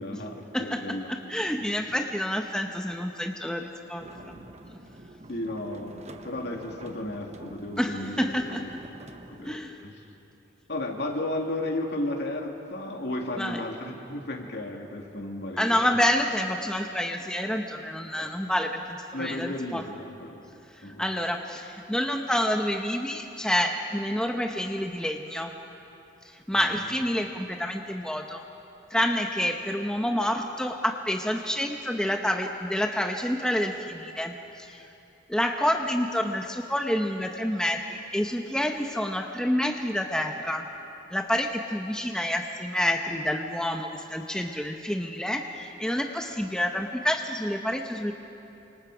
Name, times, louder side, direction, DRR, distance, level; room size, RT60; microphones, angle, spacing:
voice 1, 0.0-1.1 1.5-1.9 5.3-5.9 6.2-8.7 9.0-10.0 10.7-15.9 18.2-18.3 19.1-20.4 20.8-21.1 26.5-26.7, left 1 dB, 60° left, 1 dB, 2.7 m, -34 dB
voice 2, 1.1-4.1 7.8-8.6 9.5-9.7 13.4-13.6 15.6-19.8 20.7-25.5 26.5-28.4 28.9-34.9 35.3-40.7 41.1-48.1, equal, 5° left, 3 dB, 0.9 m, -28 dB
sound 1, 4.0-9.5, right 1 dB, 35° right, 1.1 m, -46 dB
29.0 x 25.5 x 5.0 m, 2.9 s
head